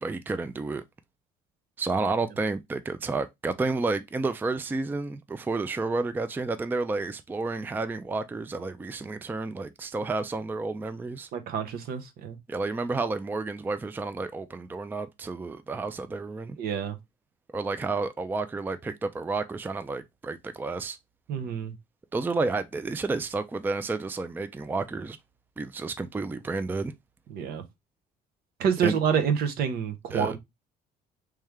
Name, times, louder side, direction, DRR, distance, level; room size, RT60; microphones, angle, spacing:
voice 1, 0.0-0.8 1.8-11.3 12.5-16.6 17.5-21.0 22.1-25.2 25.6-26.9 28.8-29.0 30.1-30.3, right 3 dB, 10° right, 0.4 m, -31 dB
voice 2, 11.3-12.4 16.6-17.0 21.3-21.7 27.3-27.6 28.6-30.4, right 7 dB, 70° right, 0.9 m, -27 dB
3.2 x 3.2 x 3.5 m
cardioid pair, 105°, 17 cm